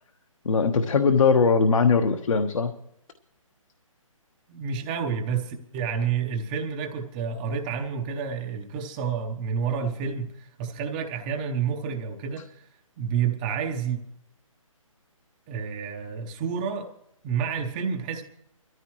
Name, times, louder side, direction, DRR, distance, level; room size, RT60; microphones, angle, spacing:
voice 1, 0.4-2.7, left 5 dB, 70° left, 5 dB, 1.3 m, -20 dB
voice 2, 4.5-12.7 13.0-14.0 15.5-16.9 17.2-18.2, right 6 dB, 15° right, 4 dB, 0.7 m, -29 dB
21.5 x 14.0 x 3.1 m, 0.76 s
hypercardioid pair, 165°, 18 cm